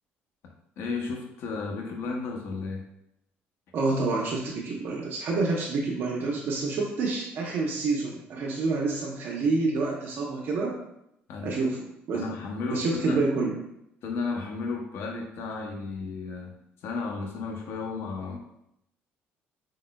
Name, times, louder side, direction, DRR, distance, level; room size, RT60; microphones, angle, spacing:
voice 1, 0.8-2.9 11.3-11.5 12.1-13.2 14.0-18.4, left 4 dB, 65° left, 1 dB, 0.7 m, -33 dB
voice 2, 3.7-10.8 11.4-11.8 12.1-12.3 12.7-13.6, right 3 dB, 55° right, -2 dB, 0.7 m, -28 dB
5.0 x 3.8 x 2.2 m, 0.80 s
cardioid pair, 135°, 4 cm